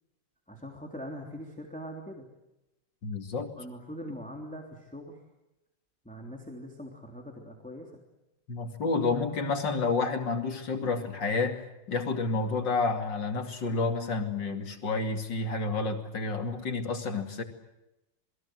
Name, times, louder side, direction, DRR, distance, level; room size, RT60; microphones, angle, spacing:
voice 1, 0.5-2.3 3.6-5.2 6.0-7.9, equal, 5° left, 1 dB, 3.2 m, -42 dB
voice 2, 3.0-3.5 8.5-17.4, left 3 dB, 65° left, 5 dB, 3.3 m, -30 dB
28.5 x 22.0 x 7.8 m, 0.94 s
omnidirectional pair, 2.1 m